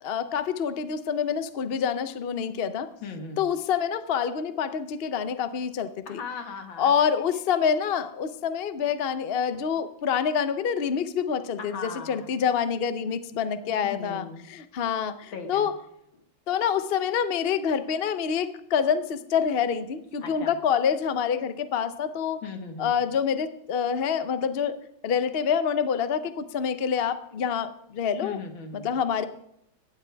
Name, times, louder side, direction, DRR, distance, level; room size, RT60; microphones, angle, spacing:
voice 1, 0.0-2.9 3.4-6.2 6.8-15.7 16.5-22.4 22.8-24.8 25.0-28.4 28.7-29.2, left 7 dB, 55° left, 11 dB, 0.6 m, -27 dB
voice 2, 3.0-3.4 6.1-6.9 11.6-12.3 13.6-14.5 15.3-15.7 20.2-20.5 22.4-22.9 28.2-28.9, left 5 dB, 75° left, 5 dB, 2.5 m, -38 dB
17.5 x 12.5 x 3.5 m, 0.76 s
omnidirectional pair, 2.1 m